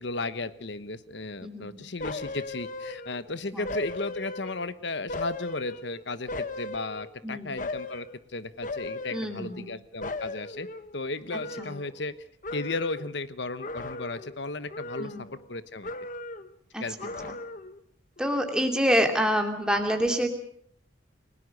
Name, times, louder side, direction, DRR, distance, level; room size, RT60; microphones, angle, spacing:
voice 1, 0.0-10.7 10.9-12.1 12.5-15.1 15.5-15.9 16.8-16.9, left 3 dB, 65° left, 13 dB, 1.1 m, -35 dB
sound 1, 2.0-3.3 3.6-4.7 5.1-7.2 7.6-8.1 8.6-9.7 10.0-12.2 12.4-13.1 13.6-14.4 14.7-15.6 15.8-16.5 17.0-17.8 18.2-18.3, left 2 dB, 40° left, 1.1 m, -37 dB
voice 2, 7.2-7.5 9.1-9.7 11.6-11.7 15.0-15.2 16.7-16.8 17.2-17.3 18.2-20.3, equal, 5° right, 3 dB, 2.7 m, -26 dB
29.5 x 18.0 x 6.5 m, 0.64 s
head